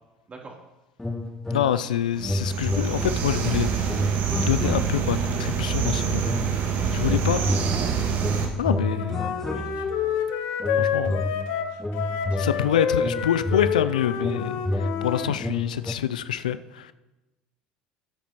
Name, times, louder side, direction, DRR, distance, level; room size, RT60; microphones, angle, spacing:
sound 1, 1.0-1.9 2.2-5.3 5.8-6.7 7.0-10.1 10.6-15.9, left 1 dB, 10° left, 0.8 m, -30 dB
voice 1, 1.5-3.9 4.4-7.4 8.6-9.3 10.8-11.2 12.4-16.9, left 10 dB, 90° left, 14 dB, 0.3 m, -26 dB
sound 2, 2.2-8.5, right 7 dB, 55° right, 1.7 m, -26 dB
voice 2, 7.4-7.9 9.5-9.8 12.2-13.1 15.1-15.4, right 3 dB, 30° right, -1 dB, 3.0 m, -39 dB
Wind instrument woodwind instrument, 8.7-15.3, left 8 dB, 65° left, 1.0 m, -28 dB
15.5 x 8.5 x 2.9 m, 1.1 s
hypercardioid pair, 70°, 4 cm